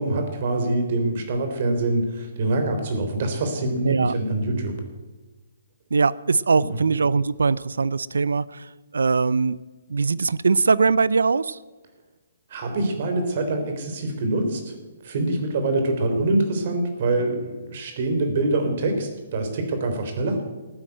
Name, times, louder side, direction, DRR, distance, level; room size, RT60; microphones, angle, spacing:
voice 1, 0.0-4.8 6.7-6.8 12.5-14.7 15.0-20.5, right 2 dB, 50° right, 6 dB, 3.6 m, -25 dB
voice 2, 5.9-8.7 8.9-9.6 9.9-11.6, right 4 dB, 80° right, 20 dB, 0.5 m, -21 dB
14.5 x 9.6 x 8.0 m, 1.2 s
hypercardioid pair, 140°, 0 cm